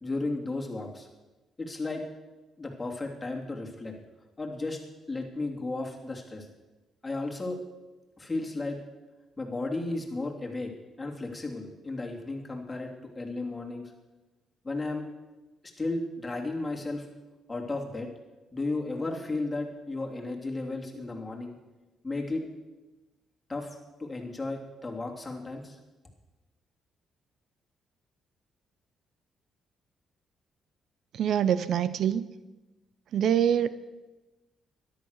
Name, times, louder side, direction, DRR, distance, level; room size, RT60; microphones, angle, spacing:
voice 1, 0.0-1.1 1.6-2.0 2.6-3.9 4.4-4.8 5.1-6.5 7.0-7.6 8.2-8.8 9.4-10.7 11.0-13.8 14.6-15.1 15.8-17.1 17.5-18.1 18.5-21.5 22.0-22.4 23.5-25.8, left 2 dB, 20° left, 1 dB, 2.9 m, -34 dB
voice 2, 31.1-32.3 33.1-33.7, right 9 dB, 70° right, 15 dB, 0.6 m, -25 dB
13.0 x 11.5 x 6.6 m, 1.1 s
cardioid pair, 90°, 0 cm